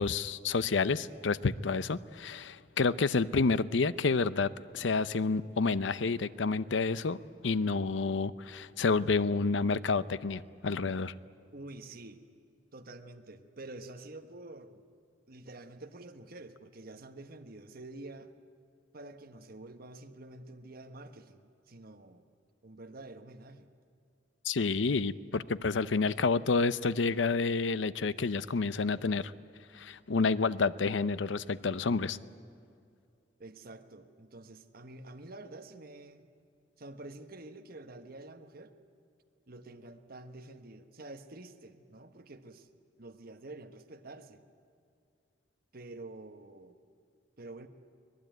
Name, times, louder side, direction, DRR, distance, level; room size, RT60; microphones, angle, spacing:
voice 1, 0.0-7.2 7.4-11.1 24.4-29.3 29.7-32.2, left 4 dB, 85° left, 16 dB, 0.6 m, -29 dB
voice 2, 11.5-12.2 12.7-14.8 15.3-18.3 18.9-22.2 22.6-23.7 33.4-36.3 36.8-38.7 39.5-42.7 43.0-44.4 45.7-46.7 47.4-47.7, right 2 dB, 55° right, 6 dB, 1.3 m, -48 dB
24.5 x 19.0 x 9.2 m, 2.4 s
head